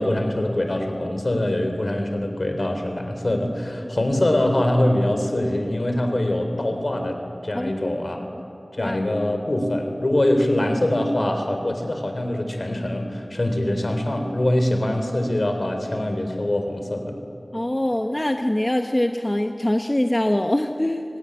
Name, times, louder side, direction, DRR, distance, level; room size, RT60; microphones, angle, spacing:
voice 1, 0.0-8.3 8.7-17.2, left 1 dB, 60° left, 5 dB, 3.6 m, -23 dB
voice 2, 7.5-7.9 8.8-9.0 17.5-21.0, left 1 dB, 25° left, 5 dB, 1.0 m, -23 dB
25.0 x 18.5 x 9.9 m, 2.7 s
wide cardioid pair, 55°, 0 cm